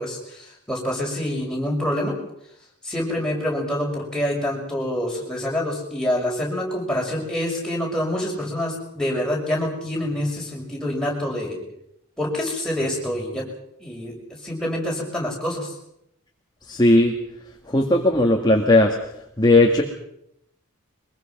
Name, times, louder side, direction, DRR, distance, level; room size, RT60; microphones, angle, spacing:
voice 1, 0.0-2.1 2.8-11.6 12.2-13.4 13.8-14.1 14.4-15.7, left 1 dB, 5° left, -3 dB, 6.2 m, -26 dB
voice 2, 16.7-17.1 17.7-19.0 19.4-19.8, left 2 dB, 20° left, 1 dB, 1.8 m, -16 dB
23.5 x 21.0 x 6.0 m, 0.78 s
head